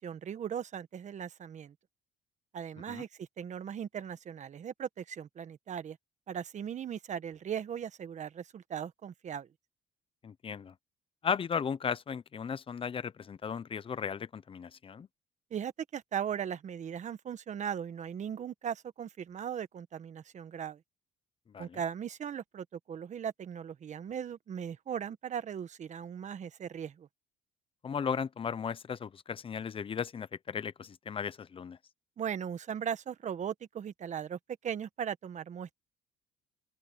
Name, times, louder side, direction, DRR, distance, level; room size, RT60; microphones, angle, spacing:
voice 1, 0.0-1.7 2.5-6.0 6.3-9.5 15.5-20.8 21.6-27.1 32.2-35.7, right 8 dB, 45° right, 1.4 m, -38 dB
voice 2, 10.2-10.7 11.2-15.1 21.5-21.8 27.8-31.8, left 7 dB, 30° left, 0.8 m, -36 dB
open air
cardioid pair, 110°, 17 cm